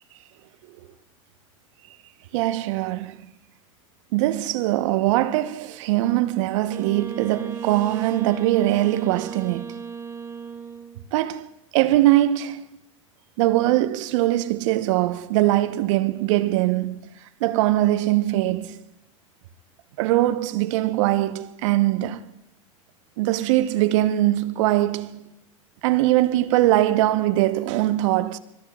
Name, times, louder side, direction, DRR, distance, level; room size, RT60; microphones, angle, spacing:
voice 1, 2.3-3.2 4.1-9.6 11.1-11.5 11.7-12.7 13.4-17.0 17.4-18.8 20.0-22.2 23.2-25.2 25.8-28.4, right 15 dB, 65° right, 1.0 m, -21 dB
Wind instrument woodwind instrument, 6.7-11.0, right 6 dB, 15° right, 2.5 m, -36 dB
25.0 x 22.5 x 2.4 m
hypercardioid pair, 95°, 17 cm